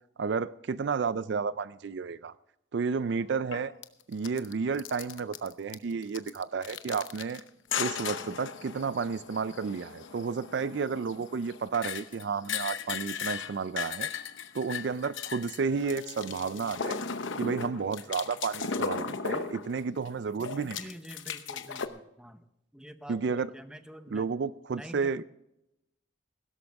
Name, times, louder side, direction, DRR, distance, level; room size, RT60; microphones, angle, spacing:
voice 1, 0.2-2.3 2.7-3.7 4.1-7.4 7.8-14.1 14.5-17.0 17.4-20.8 23.1-23.5 24.1-25.2, right 5 dB, 60° right, 0.4 m, -32 dB
sound 1, 3.1-3.2 3.5-3.8 4.1-4.5 4.8-5.7 6.0-7.4 7.7-20.1 20.4-21.9, left 6 dB, 70° left, 0.8 m, -37 dB
Acoustic guitar, 15.6-19.9 20.5-20.8, equal, 85° right, 2.4 m, -53 dB
voice 2, 20.7-22.4 22.7-24.3 24.7-25.2, equal, 5° right, 0.7 m, -47 dB
16.5 x 13.0 x 3.5 m
head